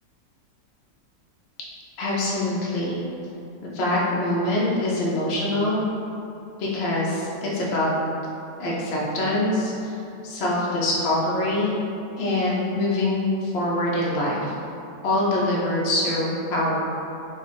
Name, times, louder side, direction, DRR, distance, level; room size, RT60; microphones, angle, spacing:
voice 1, 2.0-3.0 3.6-5.8 6.6-7.9 8.6-10.0 10.2-11.7 12.2-14.5 15.0-16.7, left 1 dB, 65° left, -6 dB, 0.6 m, -24 dB
2.7 x 2.6 x 3.3 m, 2.8 s
omnidirectional pair, 1.7 m